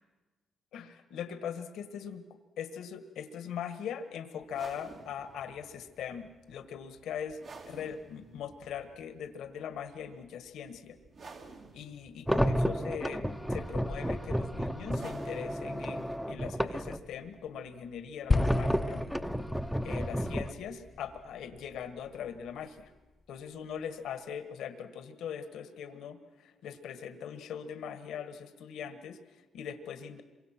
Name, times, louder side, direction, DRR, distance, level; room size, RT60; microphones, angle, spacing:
voice 1, 0.7-2.2 2.6-7.4 7.7-11.0 11.7-19.0 19.8-22.9 23.3-30.2, left 8 dB, 85° left, 10 dB, 1.6 m, -41 dB
sound 1, 4.4-19.7, right 3 dB, 60° right, 3.3 m, -54 dB
sound 2, 12.3-17.0 18.3-20.5, equal, ahead, 1.0 m, -31 dB
sound 3, 18.3-22.7, left 3 dB, 30° left, 0.8 m, -35 dB
27.0 x 24.0 x 6.1 m, 1.2 s
cardioid pair, 85°, 0 cm